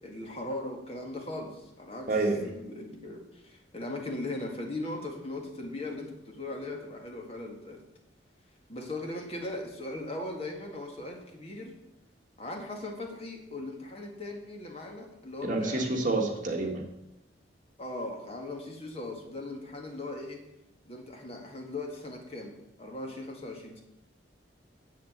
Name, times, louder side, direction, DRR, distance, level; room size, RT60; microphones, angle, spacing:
voice 1, 0.0-2.1 2.4-7.8 8.7-11.7 12.4-15.8 16.1-16.4 17.8-20.4 20.8-23.8, left 2 dB, 35° left, 1 dB, 1.8 m, -39 dB
voice 2, 2.1-2.4 15.4-16.8, right 2 dB, 45° right, 2 dB, 1.8 m, -28 dB
7.8 x 7.6 x 7.9 m, 0.88 s
head